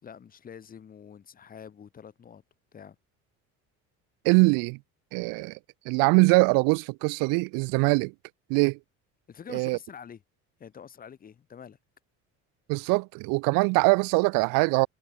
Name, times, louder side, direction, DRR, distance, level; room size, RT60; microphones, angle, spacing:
voice 1, 0.0-2.4 2.7-3.0 9.3-10.2 10.6-11.8, left 7 dB, 25° left, 4.9 m, -46 dB
voice 2, 4.2-4.8 5.1-5.6 5.8-8.1 8.5-8.8 9.5-9.8 12.7-14.9, right 29 dB, 85° right, 1.5 m, -23 dB
cardioid pair, 170°, 32 cm